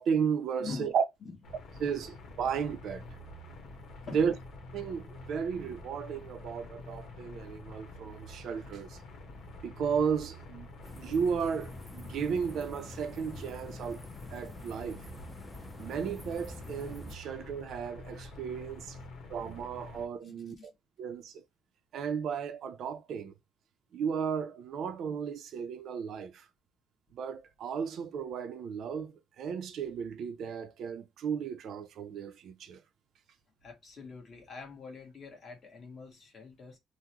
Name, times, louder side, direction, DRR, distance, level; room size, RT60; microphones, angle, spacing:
voice 1, 0.0-1.0 1.8-3.1 4.1-4.3 4.7-9.0 9.6-10.7 11.0-14.0 14.3-15.0 15.8-19.0 19.3-20.6 21.0-21.4 21.9-23.3 23.9-26.4 27.1-32.8, right 6 dB, 65° right, 0.5 m, -34 dB
voice 2, 0.6-0.9 1.2-1.3 4.0-4.3 20.2-20.7 33.6-36.8, left 4 dB, 40° left, 1.3 m, -44 dB
sound 1, 1.4-20.1, left 2 dB, 65° left, 1.2 m, -47 dB
sound 2, 10.8-17.2, left 1 dB, 5° left, 0.5 m, -47 dB
3.6 x 2.1 x 2.9 m
cardioid pair, 150°, 0 cm